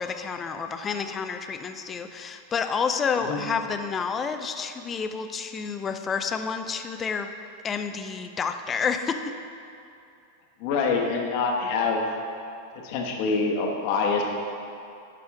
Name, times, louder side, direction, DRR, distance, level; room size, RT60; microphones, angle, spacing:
voice 1, 0.0-7.3 7.6-9.3, left 6 dB, 25° left, 8 dB, 0.5 m, -29 dB
voice 2, 10.6-12.0 12.8-14.2, left 4 dB, 55° left, 1 dB, 1.2 m, -25 dB
11.5 x 5.0 x 3.5 m, 2.6 s
hypercardioid pair, 100°, 0 cm